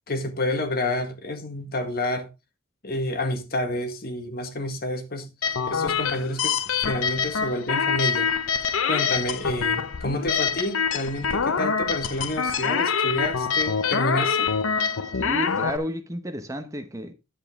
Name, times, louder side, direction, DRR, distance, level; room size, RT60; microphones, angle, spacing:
voice 1, 0.1-2.3 2.8-5.3 5.7-8.3 8.8-14.5, left 1 dB, 45° left, 1.7 m, -29 dB
sound 1, 5.4-15.8, left 6 dB, 85° left, 0.7 m, -25 dB
voice 2, 15.2-17.1, equal, 15° right, 0.9 m, -31 dB
10.0 x 8.3 x 3.6 m
head